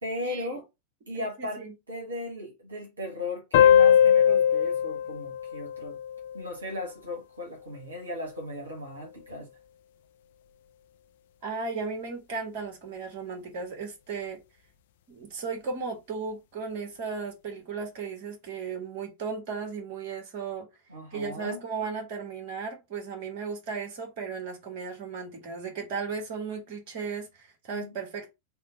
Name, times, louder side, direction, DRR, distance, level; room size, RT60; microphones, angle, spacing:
voice 1, 0.0-0.6 1.1-6.0 6.3-9.5 20.9-21.6 27.7-27.9, left 1 dB, 75° right, 1.1 m, -37 dB
voice 2, 1.2-1.7 11.4-14.4 15.1-20.7 21.1-28.3, right 5 dB, 45° right, 1.3 m, -35 dB
sound 1, 3.5-6.7, left 9 dB, 55° left, 0.4 m, -21 dB
3.6 x 2.2 x 4.1 m
figure-of-eight pair, 90°, 0 cm